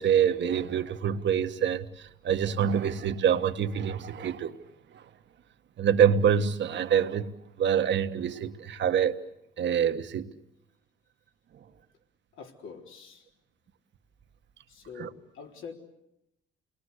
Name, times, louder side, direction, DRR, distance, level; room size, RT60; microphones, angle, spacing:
voice 1, 0.0-4.5 4.9-5.0 5.8-7.3 7.6-9.2 9.6-10.3 15.0-15.1, right 8 dB, 65° right, 1.6 m, -26 dB
voice 2, 12.3-13.3 14.7-15.7, left 6 dB, 80° left, 3.8 m, -45 dB
29.0 x 21.0 x 8.3 m
cardioid pair, 90°, 20 cm